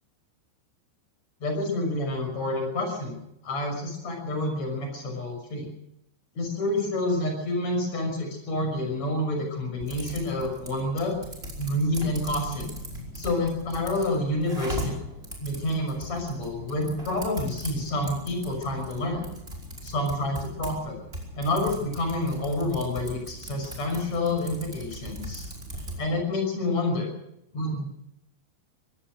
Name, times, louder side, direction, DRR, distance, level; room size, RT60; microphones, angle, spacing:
voice 1, 1.4-3.2 3.4-5.7 6.4-11.1 11.6-12.7 13.1-14.9 15.4-19.2 19.8-21.0 21.4-25.4 26.0-27.1 27.5-27.9, left 1 dB, 35° left, 3 dB, 6.8 m, -28 dB
Typing, 9.8-26.0, equal, 15° right, 5.1 m, -39 dB
24.5 x 17.0 x 6.4 m, 0.82 s
omnidirectional pair, 5.3 m